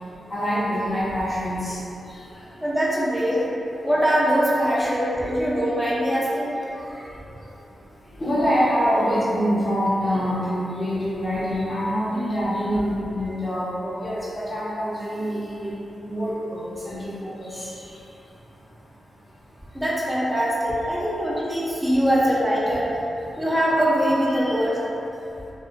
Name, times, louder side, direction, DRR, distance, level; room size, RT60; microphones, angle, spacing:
voice 1, 0.3-1.8 2.1-2.2 5.2-5.3 6.8-7.0 8.2-15.7 16.0-17.8 24.3-24.7, equal, 35° left, -8 dB, 0.8 m, -25 dB
voice 2, 2.6-3.5 3.8-6.6 19.7-22.9 23.4-24.8, equal, 5° right, -7 dB, 0.5 m, -22 dB
2.7 x 2.0 x 2.5 m, 2.9 s
cardioid pair, 55°, 0 cm